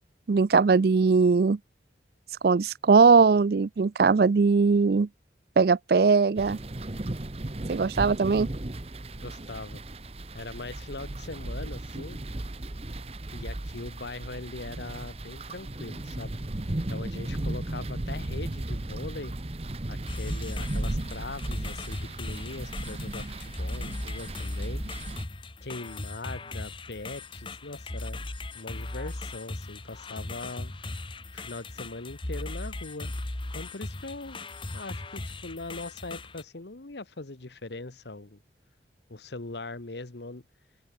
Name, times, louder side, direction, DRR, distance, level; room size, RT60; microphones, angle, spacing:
voice 1, 0.3-1.6 2.4-5.1 5.6-6.6 7.7-8.5, right 4 dB, 60° right, 0.4 m, -20 dB
sound 1, 6.4-25.2, right 1 dB, 35° right, 1.0 m, -35 dB
voice 2, 9.2-9.8 10.3-12.2 13.3-16.3 16.9-19.4 19.9-24.8 25.6-28.2 28.5-30.7 31.3-33.1 33.5-34.4 34.7-38.4 39.1-40.4, left 2 dB, 75° left, 1.3 m, -40 dB
sound 2, 20.1-36.4, left 2 dB, 30° left, 1.1 m, -38 dB
head